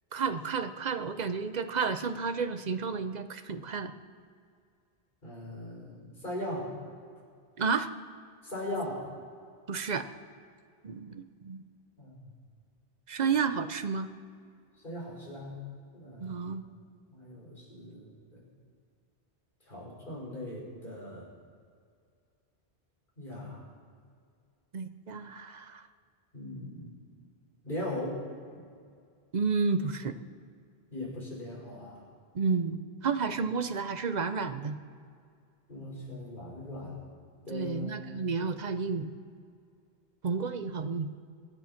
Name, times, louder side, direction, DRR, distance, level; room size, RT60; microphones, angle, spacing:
voice 1, 0.1-3.9 7.6-7.9 9.7-10.0 10.8-11.6 13.1-14.1 16.2-16.6 24.7-25.8 29.3-30.1 32.3-34.8 37.5-39.1 40.2-41.1, right 5 dB, 45° right, 10 dB, 0.8 m, -31 dB
voice 2, 5.2-6.7 8.4-9.1 12.0-12.3 14.8-15.6 15.9-16.6 17.1-18.4 19.7-21.3 23.2-23.6 26.3-26.9 27.6-28.2 28.5-28.7 30.9-32.0 35.7-37.0 37.5-38.2, left 1 dB, 50° left, -5 dB, 5.6 m, -39 dB
24.0 x 10.0 x 5.9 m, 2.2 s
omnidirectional pair, 1.1 m